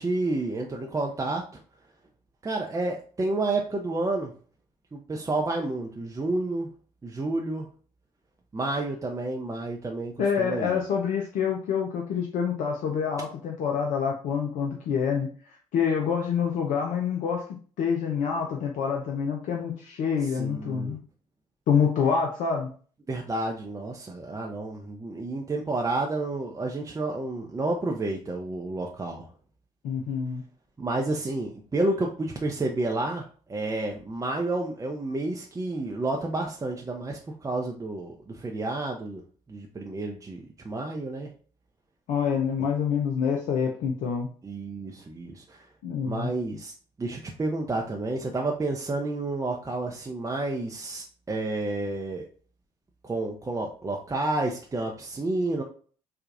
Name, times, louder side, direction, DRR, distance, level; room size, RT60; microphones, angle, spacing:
voice 1, 0.0-1.6 2.4-4.3 4.9-6.7 7.0-7.7 8.5-10.8 20.3-21.0 23.1-29.3 30.8-39.2 39.5-41.3 44.4-45.7 46.0-46.7 47.0-52.2 53.0-55.6, right 2 dB, 20° right, 0 dB, 0.6 m, -30 dB
voice 2, 10.2-17.4 17.8-21.0 21.7-22.7 29.8-30.4 42.1-44.3 45.8-46.3, left 6 dB, 60° left, 1 dB, 0.6 m, -27 dB
4.6 x 2.4 x 2.5 m, 0.42 s
figure-of-eight pair, 45°, 15 cm